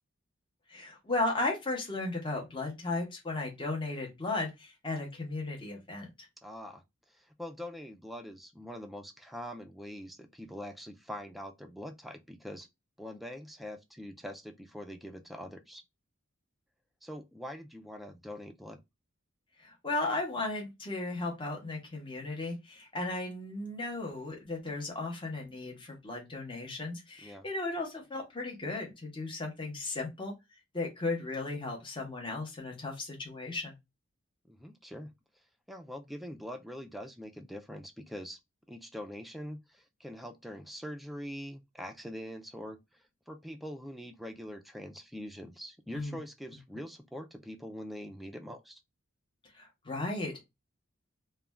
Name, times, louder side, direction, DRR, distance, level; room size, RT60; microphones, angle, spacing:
voice 1, 0.7-6.1 19.6-30.3 30.7-33.7 45.9-46.2 49.5-50.4, left 2 dB, 25° left, 0.7 m, -35 dB
voice 2, 6.4-6.8 7.1-12.7 13.0-15.8 17.0-18.8 27.2-27.5 34.4-35.1 35.7-38.4 38.7-48.8, equal, ahead, 0.3 m, -43 dB
2.4 x 2.2 x 3.2 m
head